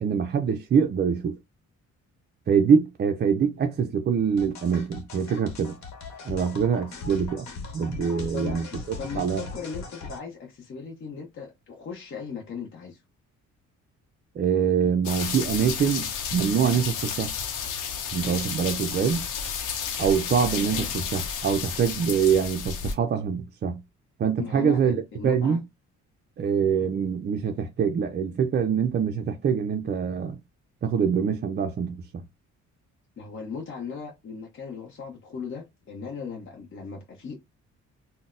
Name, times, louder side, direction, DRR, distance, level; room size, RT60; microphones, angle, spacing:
voice 1, 0.0-1.4 2.5-5.8 6.2-7.5 7.7-8.8 9.2-9.4 14.4-17.3 18.1-19.2 20.0-23.8 24.2-25.6 26.4-30.4 30.8-32.0, right 7 dB, 35° right, 0.4 m, -24 dB
sound 1, 4.4-10.2, left 3 dB, 65° left, 1.0 m, -39 dB
voice 2, 8.3-13.0 20.5-20.9 24.4-25.6 33.2-37.4, left 5 dB, 40° left, 0.7 m, -38 dB
sound 2, 15.0-22.9, left 7 dB, 90° left, 0.8 m, -32 dB
3.8 x 2.1 x 2.4 m
cardioid pair, 90°, 30 cm